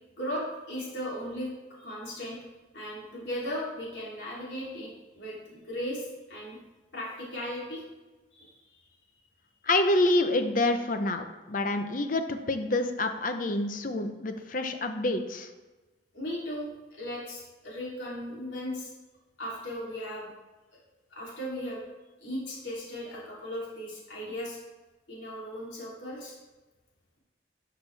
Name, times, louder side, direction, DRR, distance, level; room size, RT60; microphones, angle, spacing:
voice 1, 0.2-1.5 1.8-2.4 2.7-6.6 6.9-7.8 8.3-8.5 16.1-18.9 19.4-20.3 20.7-20.8 21.1-21.8 22.2-24.6 25.1-26.4, equal, 70° left, -6 dB, 3.1 m, -37 dB
voice 2, 9.6-15.5, left 2 dB, 45° left, 7 dB, 0.7 m, -27 dB
11.5 x 6.5 x 3.4 m, 1.2 s
head